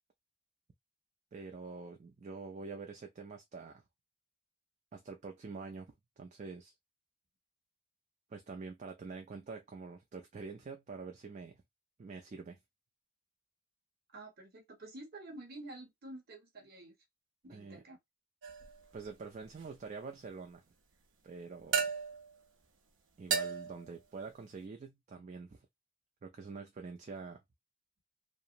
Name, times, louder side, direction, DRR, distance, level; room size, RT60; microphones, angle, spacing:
voice 1, 1.3-3.8 4.9-6.7 8.3-11.6 12.0-12.6 17.5-17.8 18.9-20.6 21.2-21.9 23.2-25.6 26.2-27.4, right 4 dB, 40° right, 0.4 m, -46 dB
voice 2, 14.1-16.9 17.4-18.0, right 2 dB, 55° right, 0.9 m, -49 dB
sound 1, 18.4-18.8 21.7-22.3 23.3-23.9, right 6 dB, 80° right, 0.6 m, -34 dB
2.9 x 2.0 x 2.4 m
head